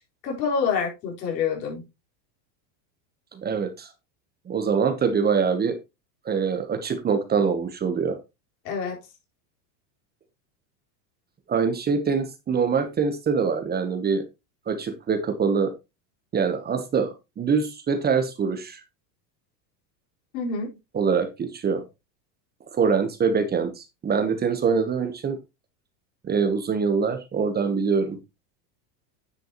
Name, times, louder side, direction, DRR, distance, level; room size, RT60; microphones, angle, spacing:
voice 1, 0.2-1.8 8.6-9.0 20.3-20.7, left 6 dB, 80° left, 4.7 m, -27 dB
voice 2, 3.3-3.9 4.5-5.8 6.2-8.2 11.5-14.2 14.7-15.7 16.3-18.8 20.9-21.8 22.7-25.4 26.2-28.2, right 5 dB, 20° right, 1.0 m, -24 dB
9.8 x 7.7 x 3.0 m
supercardioid pair, 135°, 49 cm